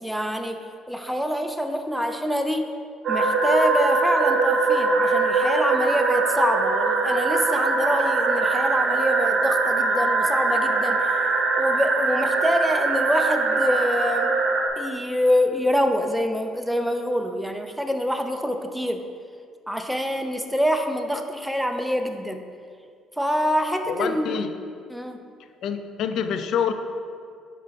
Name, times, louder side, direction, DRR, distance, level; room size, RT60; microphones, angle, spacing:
voice 1, 0.0-2.7 3.1-11.2 11.6-14.4 14.8-19.1 19.7-22.4 23.2-24.4 24.9-25.2, equal, ahead, 5 dB, 0.6 m, -26 dB
sound 1, 3.0-14.7, right 3 dB, 55° right, 1.1 m, -22 dB
voice 2, 23.9-24.5 25.6-26.7, left 7 dB, 65° left, 9 dB, 0.4 m, -26 dB
5.4 x 5.1 x 4.2 m, 2.2 s
supercardioid pair, 70°, 0 cm